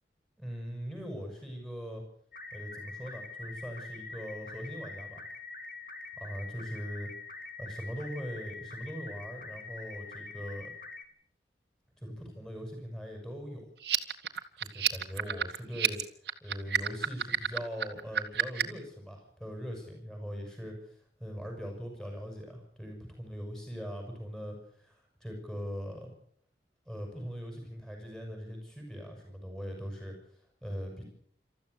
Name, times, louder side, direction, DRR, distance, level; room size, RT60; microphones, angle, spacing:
voice 1, 0.4-2.0 2.5-5.2 6.1-7.1 7.6-10.7 12.0-13.6 14.6-16.0 16.4-26.1 26.8-30.1 30.6-31.0, equal, 5° left, 2 dB, 6.5 m, -41 dB
sound 1, 2.3-11.0, left 3 dB, 50° left, 2.7 m, -44 dB
sound 2, 13.8-18.8, right 8 dB, 70° right, 1.8 m, -30 dB
27.5 x 14.0 x 8.1 m, 0.63 s
head